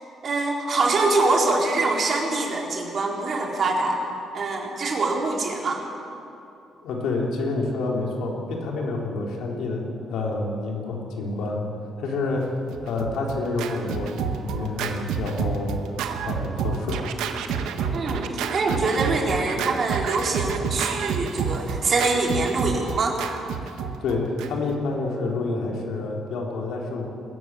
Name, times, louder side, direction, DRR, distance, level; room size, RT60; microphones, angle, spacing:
voice 1, 0.2-4.0 4.3-5.8 17.9-23.2, right 3 dB, 50° right, 0 dB, 4.0 m, -24 dB
voice 2, 6.8-11.6 12.0-12.5 12.8-15.8 16.2-17.1 24.0-27.1, left 3 dB, 80° left, 0 dB, 3.7 m, -28 dB
Scratching (performance technique), 12.7-24.8, right 6 dB, 90° right, 1.4 m, -29 dB
21.5 x 14.5 x 9.1 m, 2.8 s
cardioid pair, 90°, 0 cm